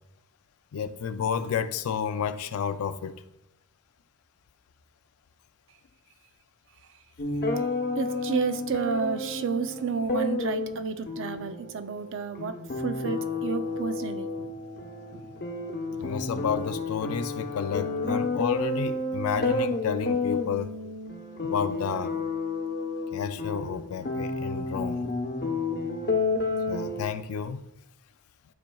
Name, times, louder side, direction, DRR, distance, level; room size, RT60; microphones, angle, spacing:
voice 1, 0.7-3.2 16.0-20.7 21.4-22.1 23.1-25.1 26.7-27.6, left 6 dB, 80° left, 0.4 m, -31 dB
sound 1, 7.2-27.0, left 3 dB, 50° left, 0.9 m, -31 dB
voice 2, 8.0-14.5 15.1-15.3 15.9-16.0, right 5 dB, 60° right, 0.5 m, -31 dB
12.0 x 4.3 x 2.3 m
head